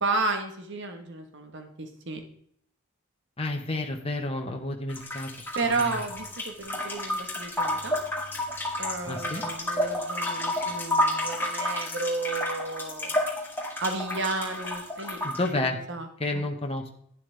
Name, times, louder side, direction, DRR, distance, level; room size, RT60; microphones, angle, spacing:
voice 1, 0.0-2.2 5.5-8.0 8.8-13.1 13.8-16.1 16.3-16.4, right 3 dB, 55° right, 5 dB, 1.4 m, -32 dB
voice 2, 3.4-5.3 5.8-6.0 9.1-9.4 15.2-15.8 16.2-17.0, left 2 dB, 25° left, 2 dB, 1.3 m, -30 dB
sound 1, 4.9-15.5, left 1 dB, 10° left, 2.2 m, -30 dB
11.5 x 10.0 x 3.4 m, 0.67 s
head